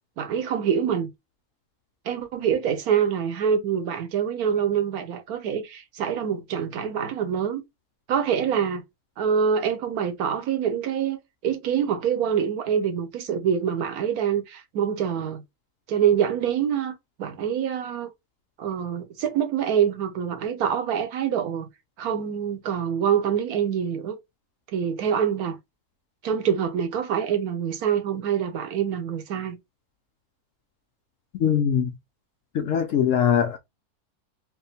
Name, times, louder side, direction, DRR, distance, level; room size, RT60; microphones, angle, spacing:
voice 1, 0.2-1.1 2.0-7.6 8.1-8.8 9.2-15.4 15.9-18.1 18.6-21.7 22.0-24.2 24.7-25.6 26.2-29.6, right 8 dB, 70° right, 1.2 m, -25 dB
voice 2, 31.4-31.9 32.5-33.6, left 8 dB, 70° left, 0.8 m, -21 dB
3.5 x 2.1 x 4.0 m
omnidirectional pair, 1.7 m